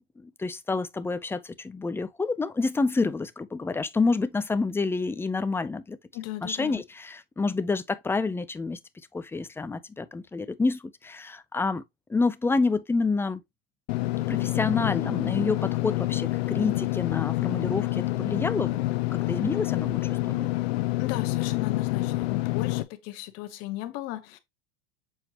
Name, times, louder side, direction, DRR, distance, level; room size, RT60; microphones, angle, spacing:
voice 1, 0.0-6.0 6.4-8.8 9.1-11.8 12.1-13.4 14.3-20.5, left 3 dB, 5° left, 0.5 m, -28 dB
voice 2, 6.1-6.8 21.0-24.4, left 15 dB, 50° left, 1.3 m, -36 dB
Engine / Mechanisms, 13.9-22.8, left 19 dB, 70° left, 0.6 m, -27 dB
7.3 x 4.4 x 2.9 m
hypercardioid pair, 115°, 32 cm